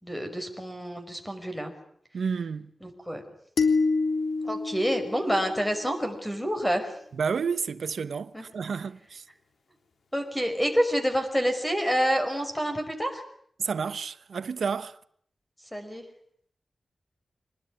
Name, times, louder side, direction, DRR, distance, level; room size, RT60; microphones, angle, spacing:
voice 1, 0.0-1.7 2.8-3.2 4.4-6.9 8.3-8.4 10.1-13.2 15.7-16.0, equal, 5° left, 5.6 m, -28 dB
voice 2, 2.1-2.7 7.2-9.2 13.6-15.0, right 6 dB, 85° right, 1.0 m, -30 dB
sound 1, 3.6-6.0, left 4 dB, 85° left, 3.4 m, -27 dB
26.0 x 20.5 x 9.8 m
wide cardioid pair, 125°, 0 cm